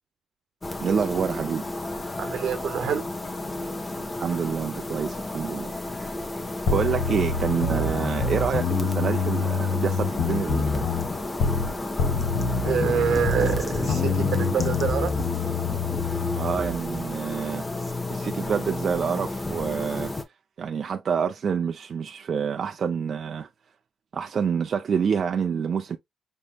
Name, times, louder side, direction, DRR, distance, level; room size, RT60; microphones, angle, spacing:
sound 1, 0.6-20.2, left 2 dB, 20° left, 0.8 m, -32 dB
voice 1, 0.8-1.6 4.2-6.1 6.7-10.8 16.3-17.7 18.1-20.1 20.6-23.5 24.1-26.0, right 6 dB, 50° right, 0.4 m, -27 dB
voice 2, 2.2-3.1 12.6-15.1, right 7 dB, 70° right, 0.9 m, -26 dB
sound 2, 6.7-11.7 12.0-16.8, left 5 dB, 80° left, 0.8 m, -26 dB
sound 3, 9.7-16.1, left 4 dB, 55° left, 1.1 m, -42 dB
5.2 x 3.4 x 2.2 m
cardioid pair, 90°, 0 cm